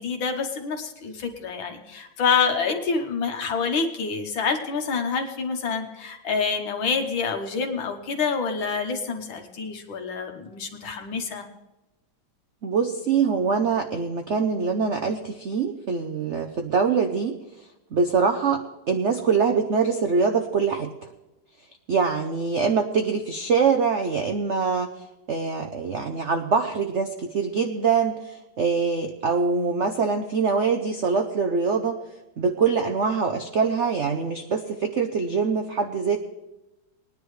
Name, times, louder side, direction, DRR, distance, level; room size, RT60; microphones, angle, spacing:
voice 1, 0.0-11.4, left 5 dB, 75° left, 4 dB, 2.0 m, -27 dB
voice 2, 12.6-17.4 17.9-21.1 21.9-24.9 25.3-32.0 32.4-36.2, right 5 dB, 70° right, 5 dB, 0.6 m, -24 dB
20.0 x 10.0 x 3.2 m, 1.0 s
omnidirectional pair, 2.2 m